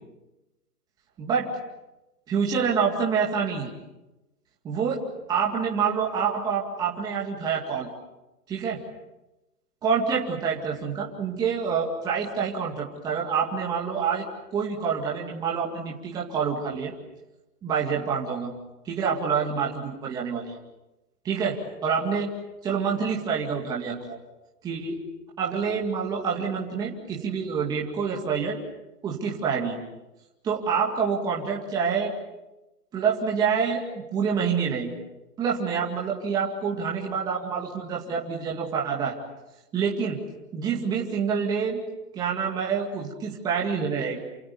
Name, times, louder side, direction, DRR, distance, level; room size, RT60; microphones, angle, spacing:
voice 1, 1.2-1.5 2.3-3.7 4.6-7.9 8.5-8.8 9.8-16.9 17.6-18.5 18.8-20.6 21.2-22.3 22.6-24.2 24.6-25.0 25.4-28.6 29.0-29.8 30.4-32.1 32.9-34.9 35.4-39.1 39.7-40.2 40.5-41.8 42.1-44.2, right 6 dB, 10° right, -2 dB, 2.2 m, -27 dB
28.5 x 27.0 x 7.0 m, 0.99 s
hypercardioid pair, 170°, 48 cm